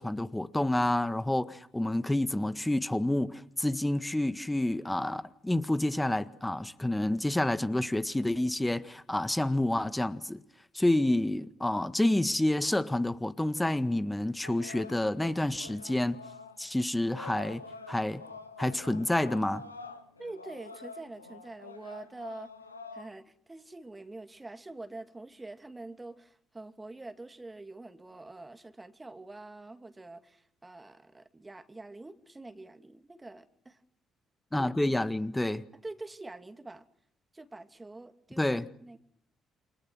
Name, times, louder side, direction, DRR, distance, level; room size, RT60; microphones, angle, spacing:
voice 1, 0.0-10.4 10.7-16.2 16.6-17.6 17.9-18.2 18.6-19.6 34.5-35.6 38.4-38.7, left 1 dB, 10° left, 1.6 m, -29 dB
sound 1, 14.4-23.1, left 4 dB, 85° left, 1.1 m, -47 dB
voice 2, 20.2-22.5 22.9-33.8 34.8-35.2 35.8-36.8 37.3-38.6 38.8-39.0, right 2 dB, 20° right, 2.6 m, -45 dB
29.0 x 26.5 x 6.3 m
figure-of-eight pair, 45°, 0 cm